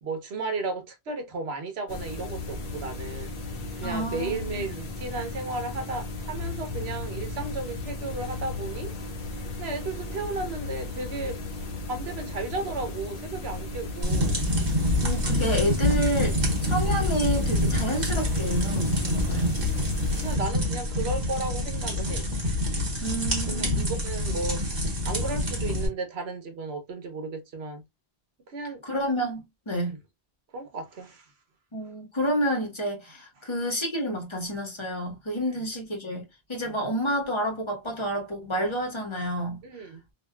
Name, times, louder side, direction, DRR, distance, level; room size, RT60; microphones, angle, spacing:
voice 1, 0.0-3.3 3.8-8.9 9.6-11.4 11.9-14.4 20.1-22.3 23.1-27.8 28.5-28.8 29.9-30.0 30.5-31.3 33.4-33.5 36.6-36.8 39.6-40.0, right 3 dB, 80° right, 1.1 m, -34 dB
sound 1, 1.9-20.4, left 2 dB, 65° left, 0.9 m, -35 dB
voice 2, 3.8-4.7 15.0-19.6 23.0-23.9 28.8-29.9 31.7-36.2 36.5-39.6, equal, 30° left, 1.1 m, -29 dB
sound 2, 14.0-25.9, left 1 dB, 45° right, 1.2 m, -26 dB
2.8 x 2.6 x 2.2 m
omnidirectional pair, 1.0 m